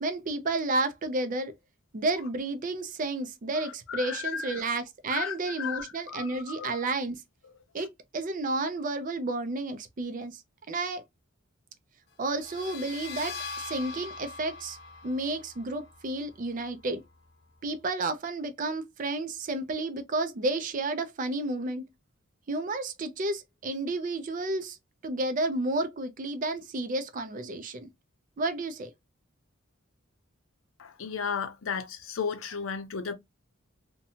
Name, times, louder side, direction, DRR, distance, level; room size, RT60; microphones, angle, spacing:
voice 1, 0.0-1.5 1.9-7.2 7.7-10.4 10.7-11.0 12.2-13.4 13.6-14.8 15.0-17.0 17.6-21.8 22.5-24.8 25.0-27.9 28.4-28.9, right 2 dB, 40° right, 0.4 m, -31 dB
voice 2, 3.9-4.7 5.1-6.8 30.8-33.1, left 6 dB, 80° left, 0.6 m, -34 dB
sound 1, 12.3-17.8, left 4 dB, 55° left, 1.0 m, -43 dB
2.7 x 2.2 x 2.7 m
head